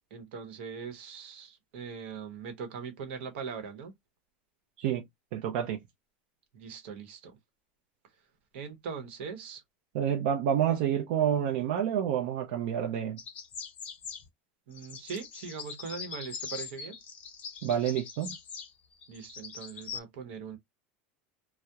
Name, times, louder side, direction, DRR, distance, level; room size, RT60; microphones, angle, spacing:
voice 1, 0.1-3.9 6.5-7.4 8.5-9.6 14.7-17.0 19.1-20.6, right 6 dB, 75° right, 0.8 m, -41 dB
voice 2, 5.3-5.8 9.9-13.2 17.6-18.4, right 9 dB, 55° right, 0.4 m, -28 dB
sound 1, 13.2-14.3 14.7-20.0, left 6 dB, 25° left, 0.5 m, -42 dB
2.8 x 2.0 x 2.2 m
supercardioid pair, 180°, 6 cm